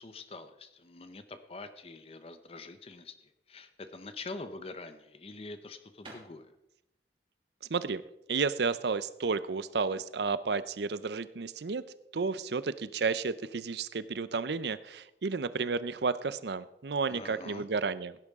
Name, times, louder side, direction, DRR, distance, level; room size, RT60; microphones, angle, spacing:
voice 1, 0.0-6.5 17.1-17.7, left 3 dB, 35° left, 10 dB, 0.7 m, -45 dB
sound 1, 5.9-9.8, right 2 dB, 30° right, 2.5 m, -57 dB
voice 2, 7.7-8.0 8.3-11.8 12.1-18.2, right 4 dB, 70° right, 16 dB, 0.6 m, -32 dB
16.5 x 10.5 x 3.6 m, 0.87 s
head